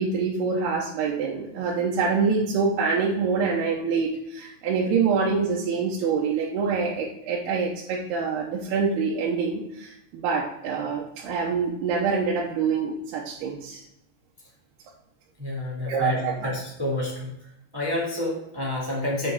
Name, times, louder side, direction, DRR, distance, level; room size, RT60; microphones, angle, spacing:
voice 1, 0.0-13.8 15.9-16.3, right 5 dB, 85° right, -3 dB, 3.0 m, -25 dB
voice 2, 15.4-17.3 17.7-19.3, left 2 dB, 20° right, -5 dB, 0.6 m, -29 dB
8.1 x 5.8 x 4.6 m, 0.82 s
omnidirectional pair, 4.6 m